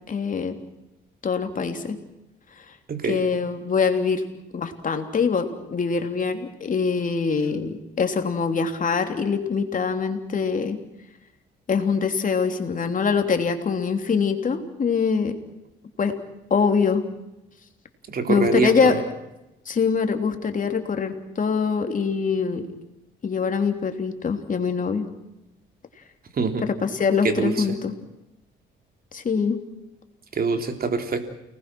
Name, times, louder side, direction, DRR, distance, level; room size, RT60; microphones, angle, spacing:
voice 1, 0.1-0.5 1.2-2.0 3.1-4.2 4.5-10.8 11.7-15.3 16.0-16.1 16.5-17.0 18.3-19.1 19.6-22.6 23.2-25.1 26.6-27.9 29.1-29.6, left 5 dB, 40° left, 6 dB, 3.4 m, -24 dB
voice 2, 2.9-3.2 18.1-19.0 26.4-26.7 27.2-27.5 30.3-31.3, right 5 dB, 50° right, 6 dB, 3.4 m, -24 dB
29.5 x 20.0 x 6.3 m, 0.93 s
cardioid pair, 90°, 20 cm